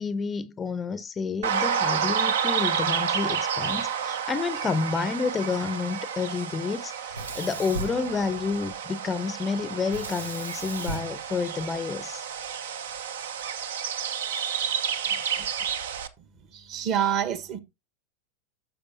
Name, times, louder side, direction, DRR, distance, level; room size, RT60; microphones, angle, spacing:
voice 1, 0.0-12.3 15.1-15.6, left 5 dB, 20° left, 0.6 m, -30 dB
sound 1, 1.4-16.1, right 7 dB, 60° right, 0.8 m, -30 dB
Sink (filling or washing), 7.1-8.8 9.9-12.2, right 2 dB, 75° right, 1.2 m, -37 dB
voice 2, 16.5-17.6, right 9 dB, 40° right, 1.3 m, -27 dB
12.5 x 6.6 x 2.7 m
figure-of-eight pair, 90°, 0 cm